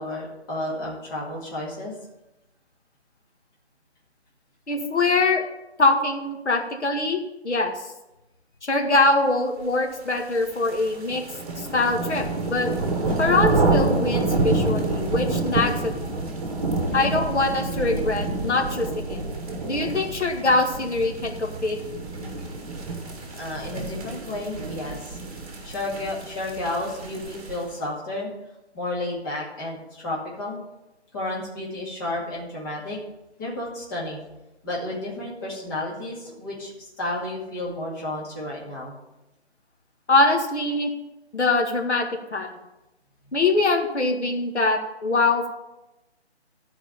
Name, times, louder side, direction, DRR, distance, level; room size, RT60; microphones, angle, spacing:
voice 1, 0.0-2.0 13.1-13.2 23.3-25.2 25.6-28.3 28.7-30.6 31.1-33.0 33.4-34.2 34.6-39.0, left 1 dB, 20° left, -6 dB, 2.3 m, -32 dB
voice 2, 4.7-5.4 5.8-7.7 8.6-11.2 11.6-12.7 13.2-15.9 16.9-19.2 19.6-21.8 40.1-40.9 41.3-42.5 43.3-45.5, left 3 dB, 80° left, 3 dB, 1.9 m, -23 dB
sound 1, 10.2-27.7, right 2 dB, 35° right, 1.7 m, -28 dB
12.0 x 4.9 x 6.9 m, 0.97 s
figure-of-eight pair, 160°, 34 cm